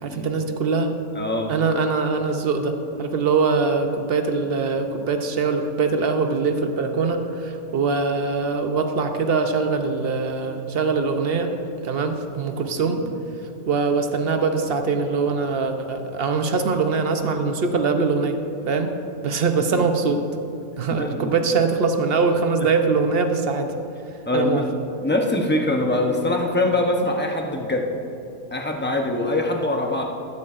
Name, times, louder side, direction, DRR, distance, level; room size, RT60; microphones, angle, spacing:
voice 1, 0.0-0.9 1.5-11.5 11.8-13.0 13.7-18.4 18.7-19.0 19.2-20.2 20.8-23.7 24.3-24.7, right 4 dB, 55° right, 6 dB, 0.7 m, -22 dB
voice 2, 1.2-1.5 13.0-13.1 19.7-19.8 21.0-21.3 24.3-24.6 25.0-27.9 28.5-30.0, left 2 dB, 15° left, 1 dB, 0.4 m, -23 dB
14.0 x 13.0 x 2.5 m, 2.6 s
omnidirectional pair, 1.5 m